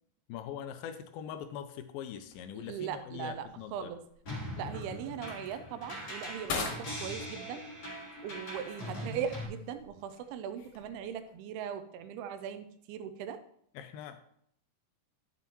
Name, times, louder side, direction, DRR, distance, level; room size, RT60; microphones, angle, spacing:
voice 1, 0.3-3.9 13.8-14.2, left 9 dB, 85° left, 9 dB, 2.1 m, -42 dB
sound 1, 2.2-11.3, left 4 dB, 65° left, 2.8 m, -45 dB
voice 2, 2.5-4.0 4.6-7.6 8.2-13.4, right 8 dB, 80° right, 9 dB, 2.5 m, -39 dB
sound 2, 4.3-9.5, equal, 35° left, 1.9 m, -41 dB
11.0 x 6.9 x 3.0 m, 0.67 s
omnidirectional pair, 4.7 m